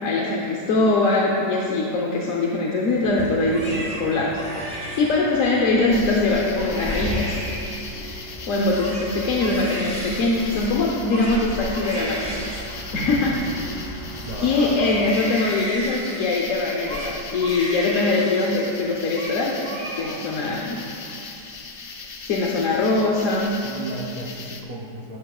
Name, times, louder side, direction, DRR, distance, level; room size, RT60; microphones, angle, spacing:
voice 1, 0.0-7.4 8.5-14.1 14.4-19.7 20.0-20.8 22.2-23.5, left 2 dB, 60° left, -2 dB, 1.0 m, -22 dB
Bus, 2.9-15.4, equal, 30° right, 2.1 m, -37 dB
Crying sobbing, 3.4-5.6 6.1-6.3 6.5-8.3 8.6-14.3 14.8-18.7 19.0-19.4 19.6-20.3 20.7-21.3, equal, 5° left, 1.4 m, -35 dB
sound 1, 5.9-24.6, left 4 dB, 75° left, 0.5 m, -37 dB
voice 2, 14.3-14.7 23.6-25.2, right 2 dB, 90° right, -3 dB, 0.3 m, -34 dB
12.0 x 12.0 x 2.4 m, 2.7 s
omnidirectional pair, 1.9 m